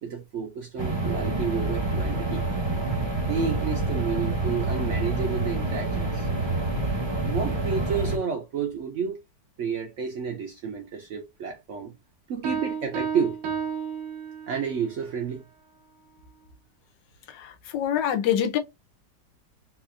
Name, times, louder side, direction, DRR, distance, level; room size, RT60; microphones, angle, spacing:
voice 1, 0.0-3.0 3.3-6.3 7.2-9.2 9.6-11.9 12.3-13.4 14.5-15.4, right 6 dB, 65° right, 0.7 m, -31 dB
sound 1, 0.8-8.2, right 2 dB, 25° right, 0.6 m, -27 dB
Piano, 12.4-14.8, right 6 dB, 85° right, 1.4 m, -32 dB
voice 2, 17.3-18.6, left 10 dB, 90° left, 1.3 m, -25 dB
4.0 x 2.4 x 2.5 m
omnidirectional pair, 1.9 m